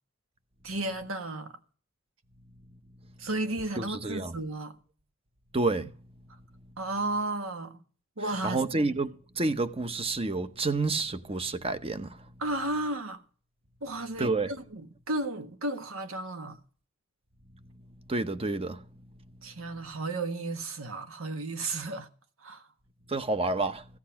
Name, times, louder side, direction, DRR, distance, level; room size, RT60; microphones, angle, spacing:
voice 1, 0.6-1.5 3.2-4.8 6.8-7.8 8.2-8.6 12.4-13.2 13.8-16.6 19.4-22.1 22.4-22.6, right 2 dB, 85° right, 1.4 m, -33 dB
voice 2, 3.8-4.3 5.5-5.9 8.4-9.1 9.4-12.2 14.2-14.5 18.1-18.8 23.1-23.8, right 3 dB, 30° right, 0.8 m, -29 dB
15.5 x 8.4 x 5.7 m
head